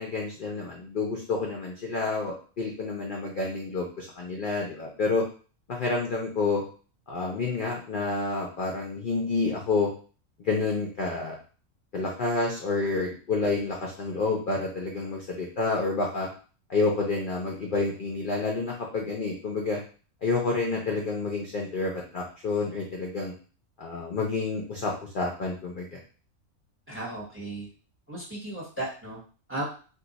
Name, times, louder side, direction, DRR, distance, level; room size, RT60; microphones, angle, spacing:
voice 1, 0.0-5.2 5.7-6.6 7.1-9.9 10.4-11.4 11.9-16.3 16.7-19.8 20.2-23.3 23.8-26.0, left 3 dB, 55° left, -1 dB, 0.6 m, -29 dB
voice 2, 26.9-27.7 28.1-29.2 29.5-29.6, right 2 dB, 10° right, -3 dB, 0.8 m, -35 dB
2.7 x 2.4 x 3.9 m, 0.39 s
omnidirectional pair, 1.4 m